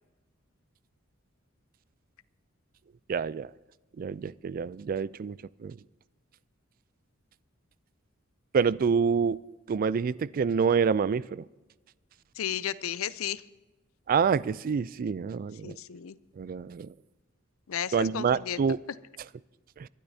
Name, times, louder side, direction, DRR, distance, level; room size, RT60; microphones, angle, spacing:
voice 1, 3.1-3.5 4.0-5.4 5.6-5.8 8.5-9.4 9.7-11.4 14.1-15.8 16.4-16.9 17.9-18.8, right 6 dB, 45° right, 0.3 m, -27 dB
voice 2, 12.4-13.4 15.6-16.1 17.7-18.6, left 9 dB, 80° left, 0.5 m, -33 dB
25.0 x 12.0 x 2.8 m
head